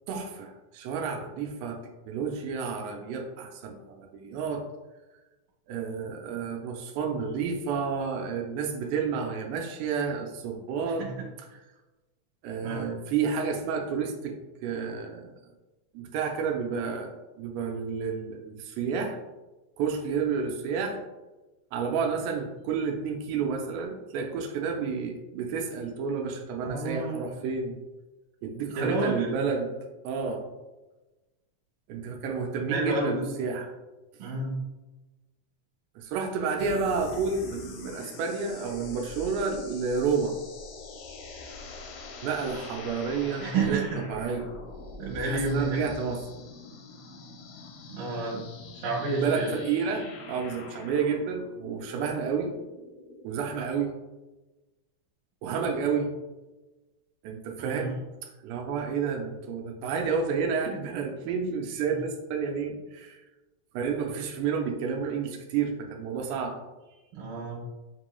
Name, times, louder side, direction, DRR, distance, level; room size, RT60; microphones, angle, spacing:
voice 1, 0.1-1.8 2.1-4.7 5.7-11.1 12.4-15.3 15.9-19.2 19.8-21.0 21.7-27.7 28.4-29.7 30.0-30.4 31.9-33.7 36.0-40.4 42.2-43.8 44.1-44.5 45.2-46.2 49.2-52.5 53.2-53.9 55.4-56.1 57.2-58.0 58.2-63.2 63.7-66.5, right 5 dB, 90° right, 2 dB, 2.7 m, -30 dB
voice 2, 12.6-12.9 26.6-27.3 28.8-29.3 32.7-33.2 34.2-34.6 43.4-44.0 45.0-45.9 47.9-48.4 48.7-49.5 57.6-58.0 67.1-67.6, right 3 dB, 70° right, -4 dB, 2.7 m, -30 dB
sound 1, 36.6-53.4, left 3 dB, 80° left, 2.0 m, -44 dB
7.5 x 3.0 x 2.2 m, 1.1 s
omnidirectional pair, 4.6 m